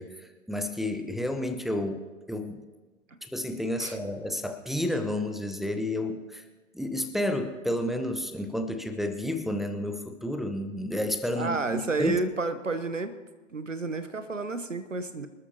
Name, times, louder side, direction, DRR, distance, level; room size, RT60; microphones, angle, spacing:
voice 1, 0.0-2.0 2.3-2.6 3.2-6.4 6.7-12.2, left 1 dB, ahead, 6 dB, 0.9 m, -31 dB
voice 2, 11.4-13.2 13.5-15.3, right 3 dB, 90° right, 12 dB, 1.1 m, -31 dB
25.0 x 13.0 x 2.9 m, 1.3 s
figure-of-eight pair, 100°, 37 cm